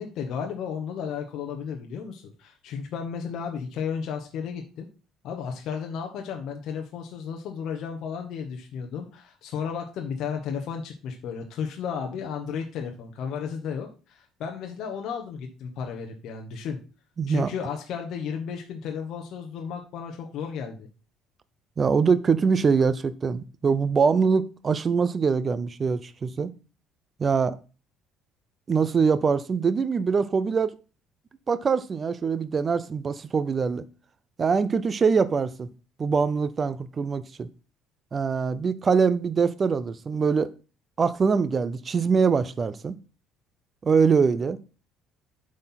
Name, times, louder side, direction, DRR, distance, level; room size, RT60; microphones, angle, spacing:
voice 1, 0.0-4.9 5.2-16.8 17.3-20.9, left 7 dB, 55° left, 1.1 m, -33 dB
voice 2, 17.2-17.5 21.8-26.5 27.2-27.6 28.7-30.7 31.5-33.8 34.4-35.7 36.0-37.5 38.1-40.5 41.0-43.0 43.8-44.6, right 5 dB, 25° right, 0.5 m, -23 dB
7.8 x 4.3 x 5.7 m
cardioid pair, 155°, 0 cm